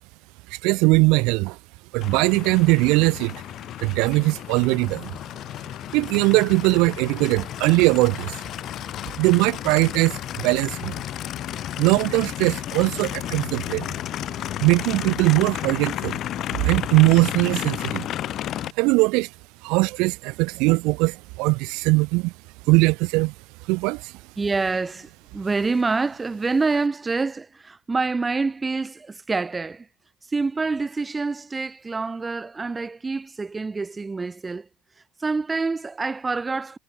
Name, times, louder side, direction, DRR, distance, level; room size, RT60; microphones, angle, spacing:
voice 1, 0.5-1.6 1.9-3.3 3.8-5.1 5.9-8.4 9.2-10.9 11.8-13.9 14.6-16.2 16.5-18.1 18.8-19.3 19.6-22.3 22.7-23.3 23.7-24.1, right 25 dB, 70° right, 0.9 m, -20 dB
Aircraft, 2.0-18.7, left 12 dB, 50° left, 3.5 m, -32 dB
voice 2, 24.4-29.9 30.3-34.7 35.2-36.8, right 4 dB, 15° right, 0.9 m, -26 dB
supercardioid pair, 120°, 0 cm